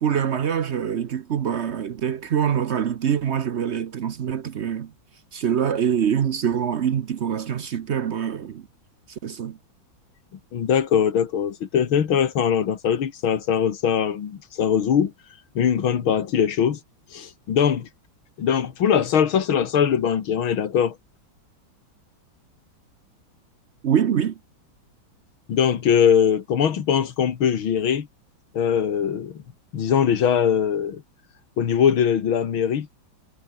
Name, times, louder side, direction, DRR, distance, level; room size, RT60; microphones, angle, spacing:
voice 1, 0.0-4.9 5.3-8.7 9.1-9.6 23.8-24.4, right 8 dB, 60° right, 0.7 m, -24 dB
voice 2, 10.5-15.1 15.6-16.8 17.1-17.9 18.4-21.0 25.5-28.1 28.5-29.4 29.7-31.0 31.6-32.9, left 8 dB, 85° left, 2.5 m, -21 dB
omnidirectional pair, 2.2 m